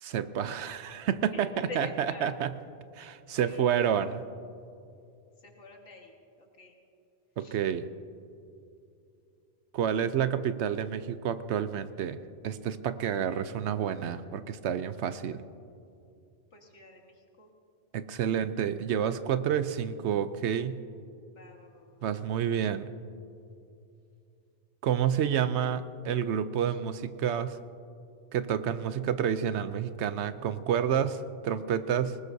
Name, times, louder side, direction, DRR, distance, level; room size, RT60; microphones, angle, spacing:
voice 1, 0.0-1.9 2.2-2.5 3.0-4.2 7.4-7.8 9.7-12.2 12.4-15.4 17.9-20.8 22.0-22.9 24.8-27.6 28.3-32.2, right 8 dB, 75° right, 12 dB, 0.9 m, -29 dB
voice 2, 1.3-2.3 3.4-4.2 5.4-6.8 7.4-7.6 16.5-17.5 21.3-22.1 26.7-26.8, left 4 dB, 75° left, 2 dB, 2.0 m, -47 dB
19.5 x 19.5 x 2.7 m, 2.6 s
omnidirectional pair, 1.2 m